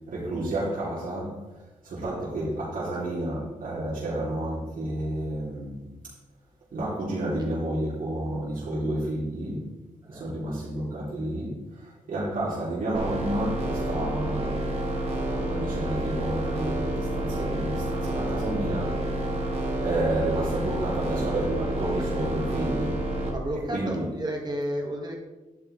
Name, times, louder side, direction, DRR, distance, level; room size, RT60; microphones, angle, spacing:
voice 1, 0.1-1.5 1.8-5.9 6.7-9.7 10.1-14.6 15.1-19.2 19.8-23.0 23.7-24.0, right 1 dB, 85° right, -8 dB, 3.4 m, -30 dB
sound 1, 12.9-23.3, right 1 dB, 50° right, 3.0 m, -29 dB
voice 2, 23.3-25.2, equal, 30° right, 0 dB, 1.9 m, -32 dB
11.0 x 8.7 x 3.4 m, 1.1 s
wide cardioid pair, 100°, 14 cm